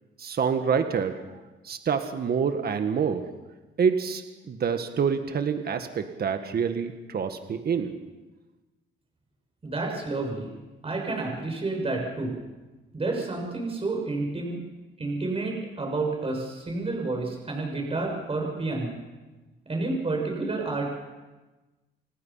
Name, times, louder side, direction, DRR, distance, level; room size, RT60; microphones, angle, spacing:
voice 1, 0.2-1.2 1.6-3.2 3.8-8.0, right 6 dB, 50° right, 7 dB, 1.8 m, -27 dB
voice 2, 9.6-10.5 10.8-12.4 12.9-14.6 15.0-19.0 19.7-20.9, right 3 dB, 30° right, 1 dB, 6.5 m, -30 dB
29.0 x 19.0 x 5.8 m, 1.2 s
cardioid pair, 90°, 20 cm